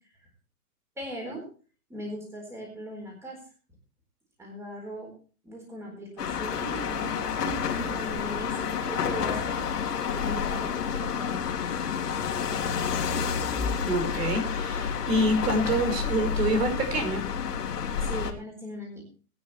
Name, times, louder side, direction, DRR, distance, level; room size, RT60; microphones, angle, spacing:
voice 1, 1.0-1.5 1.9-3.4 4.4-5.1 5.4-9.7 10.1-11.6 18.0-19.0, right 1 dB, 5° right, 0 dB, 4.1 m, -39 dB
sound 1, 6.2-18.3, left 7 dB, 75° left, 2.7 m, -29 dB
voice 2, 13.9-17.2, right 1 dB, 75° right, 6 dB, 5.0 m, -26 dB
20.5 x 9.7 x 3.2 m, 0.38 s
hypercardioid pair, 160°, 48 cm